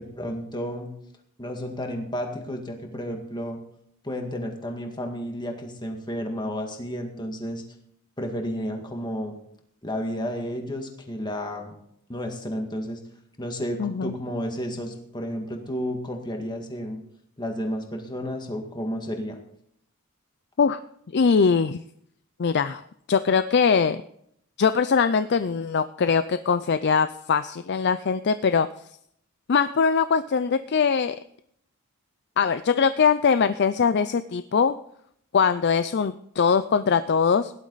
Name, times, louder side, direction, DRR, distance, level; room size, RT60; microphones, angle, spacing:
voice 1, 0.1-0.9 1.4-3.6 4.0-7.6 8.2-9.4 9.8-11.7 12.1-13.0 13.4-17.0 17.4-19.4, equal, 20° left, 3 dB, 1.9 m, -32 dB
voice 2, 13.8-14.1 20.6-20.8 21.1-21.8 22.4-24.0 24.6-28.7 29.5-31.2 32.4-34.7 35.3-37.5, left 6 dB, 50° left, 12 dB, 0.4 m, -22 dB
17.0 x 11.5 x 4.0 m, 0.70 s
head